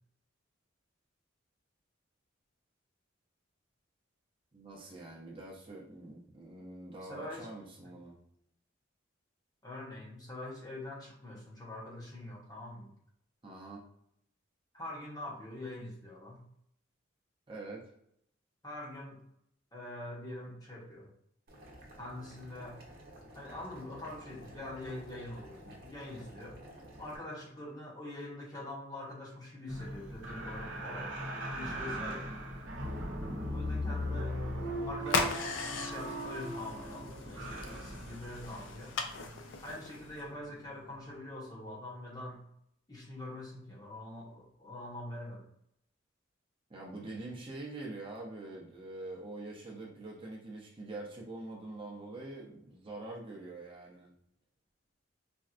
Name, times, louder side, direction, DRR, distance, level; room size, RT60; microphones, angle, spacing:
voice 1, 4.5-8.2 13.4-13.8 17.5-17.8 46.7-54.1, right 2 dB, 25° right, -2 dB, 0.6 m, -45 dB
voice 2, 7.1-7.5 9.6-12.9 14.7-16.5 18.6-19.2 19.7-21.1 22.0-22.8 23.3-26.6 27.0-31.1 31.5-32.2 33.5-34.4 34.9-38.9 39.6-42.4 42.9-45.4, left 1 dB, 20° left, -3 dB, 0.8 m, -44 dB
Boiling, 21.5-27.2, equal, 50° right, 0.9 m, -52 dB
sound 1, 29.7-41.1 41.4-41.5, equal, 75° right, 0.9 m, -39 dB
sound 2, 35.0-40.2, left 4 dB, 75° left, 0.4 m, -37 dB
4.2 x 2.3 x 2.4 m, 0.72 s
head